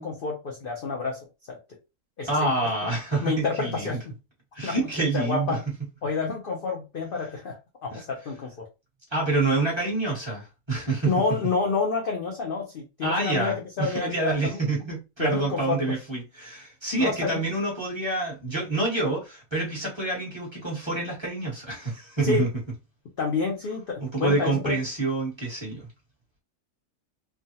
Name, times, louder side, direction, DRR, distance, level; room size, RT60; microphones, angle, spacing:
voice 1, 0.0-1.6 2.2-2.5 3.2-4.1 4.6-4.9 5.1-5.6 6.0-8.6 11.1-14.6 15.2-15.8 17.0-17.4 22.2-22.4 23.2-24.8, left 4 dB, 55° left, 0.6 m, -29 dB
voice 2, 2.3-3.9 4.5-5.6 7.9-8.0 9.1-11.1 13.0-22.5 24.0-25.9, right 2 dB, 20° right, 1.2 m, -27 dB
3.3 x 2.2 x 2.7 m
omnidirectional pair, 1.6 m